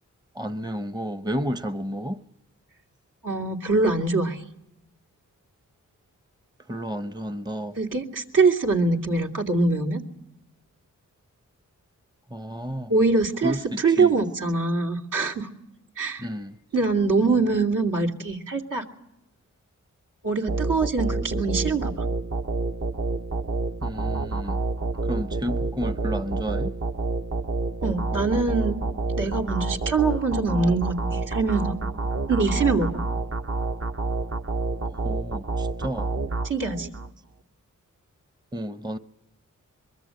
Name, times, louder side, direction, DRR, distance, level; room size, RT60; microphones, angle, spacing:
voice 1, 0.3-2.2 6.7-7.8 12.3-12.9 13.4-14.1 16.2-16.6 23.8-24.6 25.0-26.8 35.0-36.1 38.5-39.0, equal, 15° right, 0.8 m, -31 dB
voice 2, 3.2-4.4 7.8-10.0 12.9-15.5 16.0-16.3 16.7-18.8 20.2-22.0 27.8-28.8 29.2-31.7 32.3-33.0 36.4-36.9, right 3 dB, 70° right, 2.9 m, -23 dB
sound 1, 20.5-37.1, right 3 dB, 45° right, 1.0 m, -28 dB
24.0 x 22.5 x 7.8 m
wide cardioid pair, 75°, 32 cm